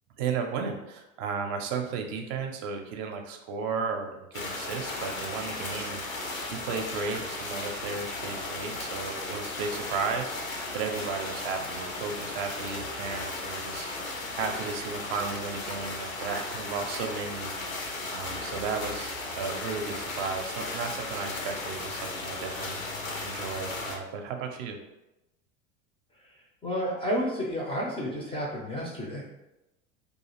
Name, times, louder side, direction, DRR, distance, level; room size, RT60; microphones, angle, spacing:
voice 1, 0.2-17.6 18.1-24.8, right 5 dB, 50° right, 4 dB, 0.5 m, -34 dB
sound 1, 4.3-24.0, left 2 dB, 90° left, 0.6 m, -36 dB
voice 2, 26.6-29.2, equal, 15° left, -2 dB, 0.4 m, -31 dB
2.4 x 2.4 x 2.9 m, 0.95 s
hypercardioid pair, 85°, 40 cm